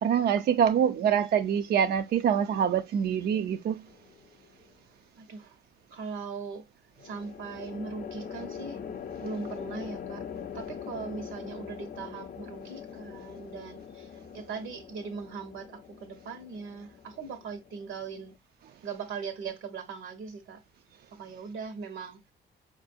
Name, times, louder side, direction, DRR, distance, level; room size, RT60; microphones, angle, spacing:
voice 1, 0.0-3.8, right 8 dB, 55° right, 0.4 m, -25 dB
voice 2, 0.9-1.2 5.2-5.6 5.9-6.7 7.0-8.8 9.2-10.3 10.5-18.3 18.8-20.6 21.1-22.2, right 5 dB, 80° right, 1.0 m, -40 dB
sound 1, 3.9-4.4 7.0-18.4, left 7 dB, 45° left, 0.5 m, -42 dB
4.5 x 2.5 x 2.5 m
cardioid pair, 90°, 20 cm